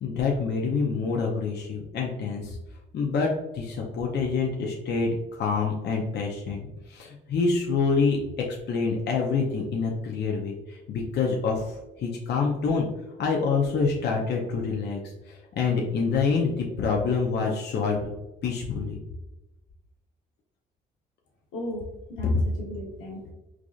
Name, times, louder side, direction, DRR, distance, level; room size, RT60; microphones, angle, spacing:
voice 1, 0.0-2.6 2.9-12.9 13.2-18.1 18.4-19.0, left 4 dB, 55° left, -1 dB, 0.6 m, -27 dB
voice 2, 21.5-23.3, equal, 85° left, -2 dB, 1.0 m, -37 dB
4.7 x 2.5 x 2.3 m, 1.0 s
supercardioid pair, 65°, 21 cm